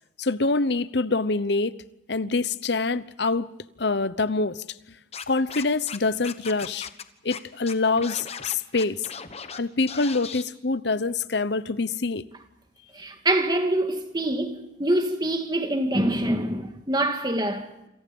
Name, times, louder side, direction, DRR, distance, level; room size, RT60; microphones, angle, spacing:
voice 1, 0.2-1.8 2.1-3.5 3.8-4.6 5.3-6.9 7.2-9.0 9.6-12.2, left 3 dB, 60° left, 0.9 m, -25 dB
Scratching (performance technique), 5.1-6.0 6.2-7.0 7.3-7.4 7.7-9.6 9.9-10.4, left 6 dB, 35° left, 1.2 m, -37 dB
voice 2, 12.9-17.9, right 1 dB, 20° right, 2.1 m, -25 dB
28.0 x 26.5 x 5.4 m
head